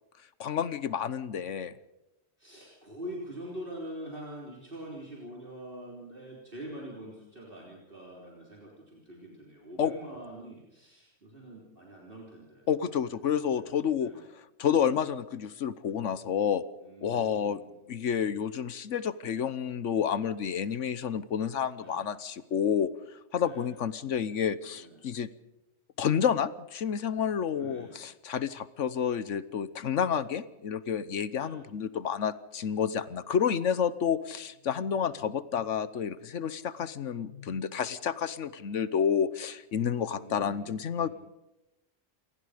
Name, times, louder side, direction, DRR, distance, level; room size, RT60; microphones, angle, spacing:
voice 1, 0.4-1.7 9.8-9.9 12.7-16.6 17.0-17.6 17.9-22.9 23.3-25.3 26.0-41.1, left 8 dB, 75° left, 15 dB, 1.3 m, -30 dB
voice 2, 2.4-12.9 13.6-14.2 16.8-17.9 21.8-22.1 23.4-23.8 24.7-25.0 27.5-28.0 31.3-31.6 40.1-41.1, right 1 dB, 45° right, -3 dB, 3.9 m, -45 dB
28.0 x 19.0 x 5.1 m, 0.91 s
omnidirectional pair, 1.3 m